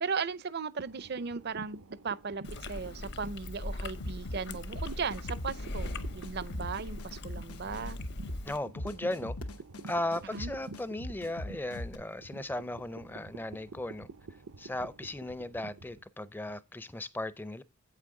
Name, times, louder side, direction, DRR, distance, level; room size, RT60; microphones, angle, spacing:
voice 1, 0.0-8.0 10.3-10.5, right 5 dB, 45° right, 0.5 m, -37 dB
sound 1, 0.8-16.0, right 3 dB, 85° right, 0.8 m, -49 dB
Chewing mastication, 2.4-8.6, left 2 dB, 50° left, 0.8 m, -41 dB
sound 2, 4.0-12.0, left 1 dB, 85° left, 1.0 m, -41 dB
voice 2, 8.5-9.4 9.8-14.1 14.6-17.6, left 1 dB, 10° left, 0.5 m, -36 dB
8.3 x 8.3 x 3.8 m
head